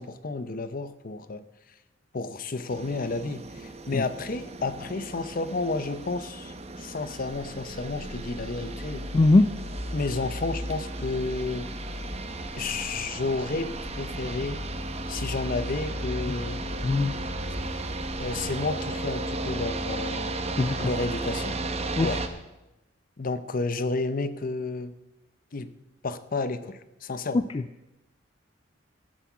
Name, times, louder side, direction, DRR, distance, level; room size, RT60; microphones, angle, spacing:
voice 1, 0.0-1.4 2.1-9.0 9.9-11.7 12.6-14.6 15.1-16.6 18.2-20.3 20.8-21.6 22.0-22.2 23.2-24.9 25.5-25.7 26.0-27.5, left 3 dB, 45° left, 13 dB, 0.7 m, -31 dB
sound 1, 2.7-22.3, right 2 dB, 35° right, 0.9 m, -35 dB
sound 2, 7.3-18.7, left 1 dB, 90° left, 2.3 m, -38 dB
voice 2, 9.1-9.5 16.8-17.1 20.6-20.9 22.0-22.1 27.3-27.4, left 2 dB, 25° left, 11 dB, 0.3 m, -20 dB
14.0 x 8.1 x 6.0 m, 0.97 s
head